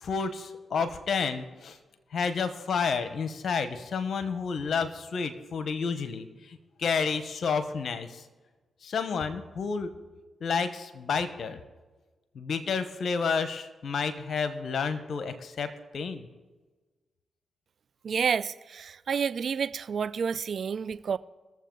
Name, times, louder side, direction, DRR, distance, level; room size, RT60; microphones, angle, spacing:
voice 1, 0.0-1.8 2.1-8.2 8.8-9.9 10.4-11.6 12.3-16.3, left 5 dB, 70° left, 1.1 m, -30 dB
voice 2, 18.0-21.2, right 6 dB, 65° right, 0.4 m, -29 dB
21.0 x 7.5 x 3.9 m
supercardioid pair, 45°, 0 cm